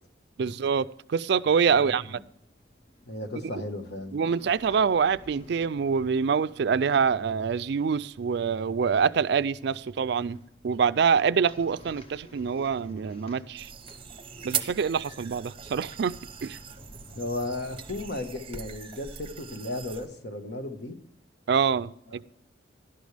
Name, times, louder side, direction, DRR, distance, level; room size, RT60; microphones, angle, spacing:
voice 1, 0.4-2.2 4.1-10.4 10.6-13.7 14.4-16.2 16.4-16.6 21.5-22.2, right 6 dB, 60° right, 0.4 m, -25 dB
sound 1, 1.9-18.1, equal, 30° left, 1.1 m, -52 dB
voice 2, 3.1-4.2 17.1-21.0 22.1-22.2, left 2 dB, 65° left, 1.4 m, -35 dB
sound 2, 13.6-20.1, right 8 dB, 30° right, 0.7 m, -39 dB
11.5 x 11.5 x 3.4 m
head